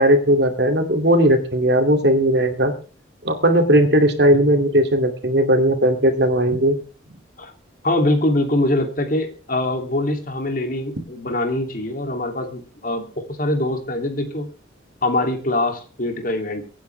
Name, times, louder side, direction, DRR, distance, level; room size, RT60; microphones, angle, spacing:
voice 1, 0.0-2.7 3.2-6.8, right 1 dB, 55° right, 5 dB, 2.6 m, -17 dB
voice 2, 7.8-14.5 15.0-16.7, left 1 dB, 45° left, 5 dB, 2.8 m, -23 dB
23.5 x 9.7 x 3.4 m, 0.37 s
head